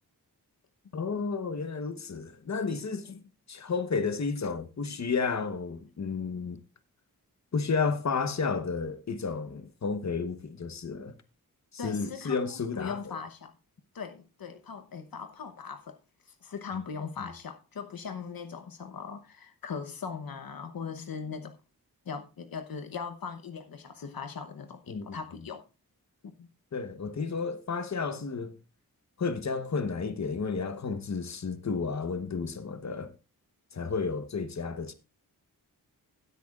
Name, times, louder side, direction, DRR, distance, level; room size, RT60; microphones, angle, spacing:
voice 1, 0.9-3.1 3.5-6.6 7.5-11.1 11.8-13.0 17.2-17.3 24.9-25.2 26.7-28.5 29.2-33.1 33.7-34.9, left 5 dB, 50° left, 1.1 m, -32 dB
voice 2, 11.8-13.5 13.9-16.0 16.3-21.6 22.1-25.6 26.2-26.5, left 6 dB, 70° left, 1.0 m, -39 dB
16.0 x 8.5 x 2.4 m
wide cardioid pair, 80°, 36 cm